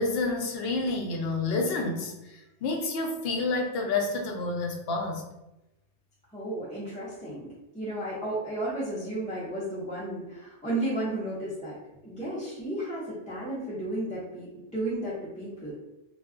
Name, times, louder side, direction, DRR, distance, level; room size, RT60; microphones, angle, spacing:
voice 1, 0.0-5.2, left 3 dB, 65° left, 1 dB, 0.7 m, -29 dB
voice 2, 6.3-7.5 7.7-11.7 12.0-15.7, right 1 dB, 10° left, -10 dB, 0.6 m, -33 dB
2.3 x 2.3 x 3.6 m, 0.96 s
omnidirectional pair, 1.2 m